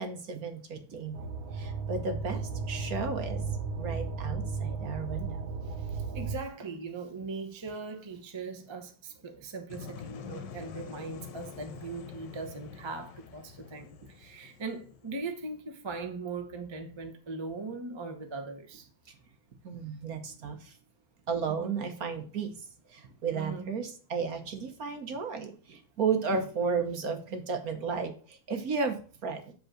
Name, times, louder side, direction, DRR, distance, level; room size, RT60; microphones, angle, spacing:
voice 1, 0.0-2.4 2.7-5.4 19.1-19.2 19.6-20.7 21.3-29.5, right 5 dB, 55° right, 1.2 m, -34 dB
sound 1, 1.1-6.4, right 4 dB, 85° right, 1.6 m, -35 dB
voice 2, 5.7-18.9 21.5-21.8 23.3-23.7 26.3-26.4, right 3 dB, 25° right, 0.6 m, -40 dB
sound 2, 9.7-15.6, left 6 dB, 70° left, 1.4 m, -46 dB
7.7 x 3.7 x 6.4 m
omnidirectional pair, 2.1 m